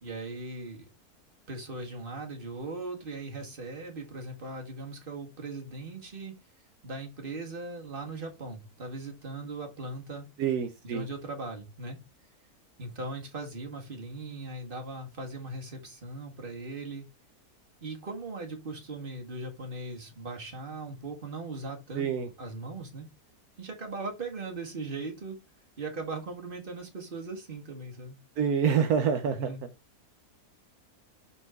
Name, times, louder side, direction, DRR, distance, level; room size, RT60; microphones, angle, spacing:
voice 1, 0.0-0.9 1.5-6.4 6.8-10.3 10.8-12.0 12.8-17.1 17.8-23.1 23.6-25.4 25.8-28.2 29.3-29.6, right 3 dB, 35° right, 2.0 m, -39 dB
voice 2, 10.4-11.1 22.0-22.3 28.4-29.4, right 7 dB, 75° right, 1.3 m, -26 dB
7.3 x 4.5 x 3.7 m
omnidirectional pair, 1.6 m